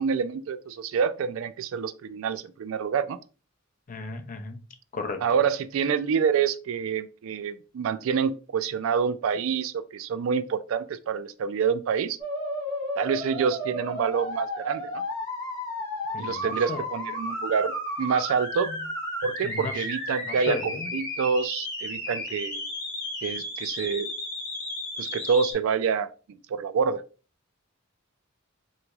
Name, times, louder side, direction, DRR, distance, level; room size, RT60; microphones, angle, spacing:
voice 1, 0.0-3.2 5.2-12.2 13.0-15.0 16.2-18.7 19.2-22.6 23.2-24.1 25.0-26.1 26.5-27.0, right 6 dB, 70° right, 0.3 m, -27 dB
voice 2, 3.9-4.6 4.9-5.2 16.1-16.8 19.4-19.9 20.3-20.9, left 3 dB, 40° left, 0.5 m, -35 dB
sound 1, 12.2-25.5, left 1 dB, 20° left, 1.5 m, -33 dB
3.8 x 3.1 x 2.3 m
head